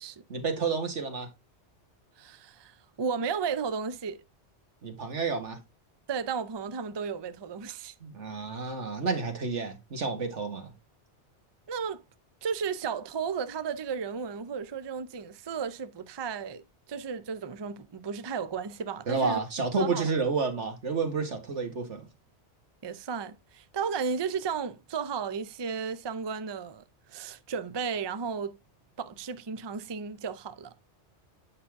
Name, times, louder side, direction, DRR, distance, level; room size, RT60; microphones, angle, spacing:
voice 1, 0.3-1.3 4.8-5.6 8.0-10.7 19.1-22.1, right 4 dB, 90° right, 2.1 m, -30 dB
voice 2, 2.2-4.2 6.1-7.9 11.7-12.0 12.4-19.4 19.8-20.1 22.8-26.8 27.1-28.6 29.0-30.7, right 6 dB, 35° right, 0.4 m, -34 dB
8.8 x 5.7 x 3.5 m
omnidirectional pair, 1.2 m